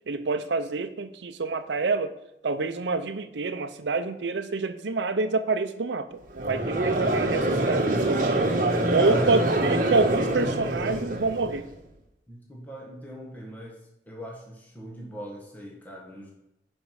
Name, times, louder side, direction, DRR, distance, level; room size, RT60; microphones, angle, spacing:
voice 1, 0.1-2.1 2.4-8.2 8.9-11.7, right 3 dB, 85° right, 9 dB, 0.6 m, -27 dB
Conversation / Crowd, 6.4-11.7, right 1 dB, 50° right, 1.2 m, -25 dB
voice 2, 9.0-9.3 12.3-13.8 14.0-16.3, equal, 10° left, -2 dB, 1.6 m, -37 dB
10.0 x 5.3 x 4.8 m, 0.88 s
head